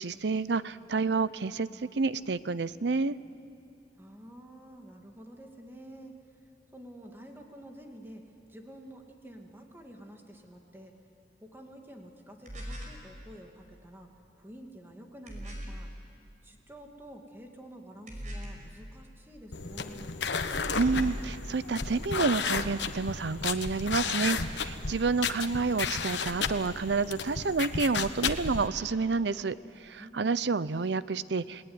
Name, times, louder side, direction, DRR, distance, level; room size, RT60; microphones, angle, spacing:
voice 1, 0.0-1.7 2.0-3.2 20.8-31.7, right 4 dB, 75° right, 16 dB, 0.6 m, -29 dB
voice 2, 3.9-6.1 6.7-10.9 11.4-14.1 14.4-15.9 16.4-20.2 30.0-30.4, right 1 dB, 15° right, 2 dB, 2.2 m, -49 dB
sound 1, 12.5-13.0 15.3-15.9 18.1-18.7 20.5-21.3, equal, 45° right, 5.5 m, -39 dB
sound 2, 19.5-28.7, left 5 dB, 80° left, 1.1 m, -33 dB
30.0 x 19.0 x 9.6 m, 2.5 s
head